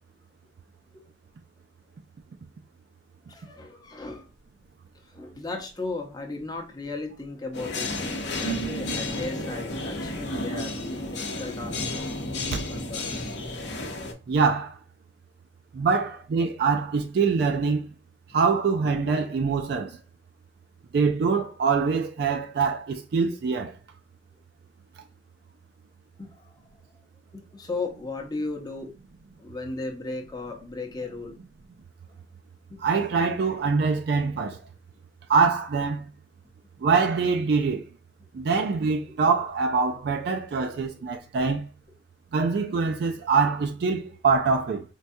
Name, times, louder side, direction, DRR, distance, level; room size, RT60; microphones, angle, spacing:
voice 1, 3.3-4.3 5.0-7.9 8.3-11.9 12.5-13.4 26.2-26.6 27.3-28.9 29.4-31.3 32.7-32.8 39.1-39.2 41.0-41.1, left 3 dB, 20° left, 0.7 m, -36 dB
sound 1, 7.5-14.1, left 1 dB, 80° left, 0.7 m, -32 dB
voice 2, 14.3-14.8 15.7-17.9 18.3-20.0 20.9-23.7 32.8-34.6 35.3-36.1 36.8-37.8 38.3-41.6 42.3-44.8, right 5 dB, 60° right, 0.3 m, -24 dB
4.6 x 2.2 x 2.6 m
head